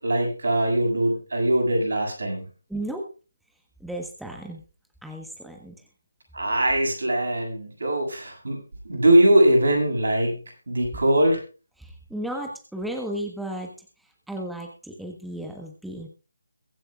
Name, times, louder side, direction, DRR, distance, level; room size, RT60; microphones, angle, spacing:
voice 1, 0.0-2.5 6.3-8.6 8.8-10.4 10.7-11.4, right 1 dB, 65° right, 0 dB, 7.3 m, -21 dB
voice 2, 2.7-3.0 3.8-4.6 5.0-5.7 11.8-13.7 14.3-16.1, right 1 dB, ahead, 1 dB, 1.3 m, -34 dB
22.5 x 8.4 x 2.4 m, 0.35 s
figure-of-eight pair, 150°, 0 cm